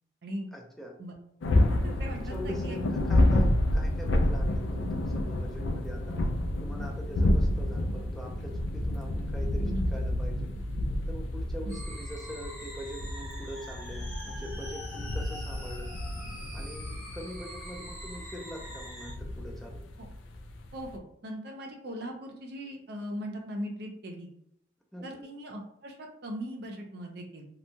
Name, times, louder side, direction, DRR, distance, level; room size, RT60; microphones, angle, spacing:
voice 1, 0.5-1.0 1.9-6.2 6.6-10.5 11.1-15.9 16.5-19.8 24.9-25.3, equal, ahead, -1 dB, 0.4 m, -43 dB
sound 1, 1.4-21.0, left 1 dB, 90° left, 0.4 m, -29 dB
voice 2, 1.7-2.8 9.6-9.9 11.7-11.8 20.0-20.1 20.7-24.3 25.0-27.5, equal, 60° right, 2 dB, 0.5 m, -39 dB
sound 2, 11.7-19.1, equal, 15° right, 0.9 m, -45 dB
2.9 x 2.2 x 2.6 m, 0.71 s
head